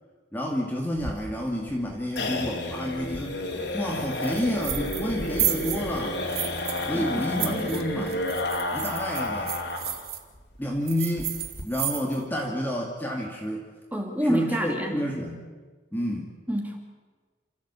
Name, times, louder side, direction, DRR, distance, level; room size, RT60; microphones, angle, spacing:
voice 1, 0.3-6.2 6.9-8.2 8.7-9.6 10.6-13.7 14.2-15.5 15.9-16.3, equal, 10° left, -1 dB, 2.2 m, -30 dB
sound 1, 1.0-10.1 10.3-10.4 10.8-10.9 11.2-11.6, left 2 dB, 65° left, 3.4 m, -31 dB
sound 2, 4.2-5.1 5.4-6.9 7.2-10.2 10.9-12.3, right 11 dB, 50° right, 1.8 m, -32 dB
voice 2, 6.9-8.1 13.9-14.9 16.5-16.8, equal, 10° right, 2 dB, 2.7 m, -29 dB
28.0 x 14.5 x 8.3 m, 1.4 s
head